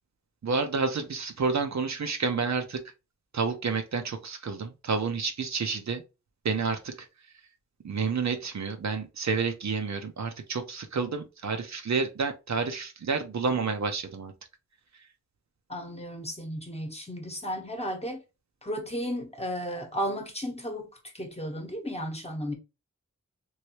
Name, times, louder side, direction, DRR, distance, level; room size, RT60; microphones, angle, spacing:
voice 1, 0.4-2.8 3.3-6.0 6.4-6.9 7.8-14.3, right 4 dB, 65° right, 0.7 m, -29 dB
voice 2, 15.7-18.2 18.6-20.9 21.1-22.5, equal, 20° left, 1.0 m, -34 dB
3.1 x 2.6 x 2.9 m
wide cardioid pair, 65°, 30 cm